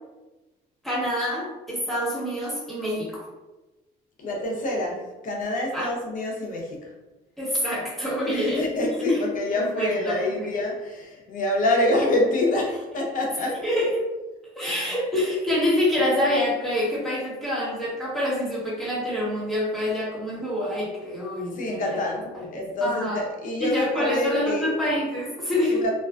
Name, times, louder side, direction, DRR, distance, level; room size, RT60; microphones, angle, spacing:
voice 1, 0.8-3.3 5.7-5.9 7.4-8.7 9.1-9.2 9.5-10.5 13.6-14.1 14.5-22.0 22.3-23.2 23.6-25.8, left 1 dB, ahead, -8 dB, 1.1 m, -26 dB
voice 2, 4.2-6.9 8.3-13.8 14.7-14.8 21.6-24.7 25.7-25.9, left 1 dB, 50° left, -1 dB, 0.7 m, -26 dB
2.4 x 2.2 x 2.3 m, 1.1 s
cardioid pair, 110°, 17 cm